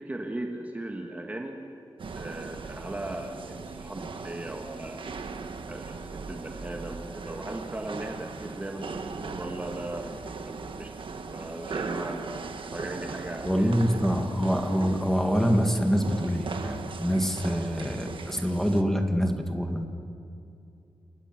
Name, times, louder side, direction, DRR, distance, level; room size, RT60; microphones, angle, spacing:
voice 1, 0.0-1.6 2.2-5.1 5.6-6.0 6.3-10.9 11.3-12.3 12.7-14.0, right 1 dB, 15° right, 2 dB, 1.6 m, -37 dB
sound 1, 2.0-18.8, right 4 dB, 65° right, 1.4 m, -39 dB
voice 2, 13.5-19.9, equal, 5° left, 4 dB, 1.9 m, -25 dB
29.0 x 14.5 x 9.1 m, 2.6 s
wide cardioid pair, 170°, 9 cm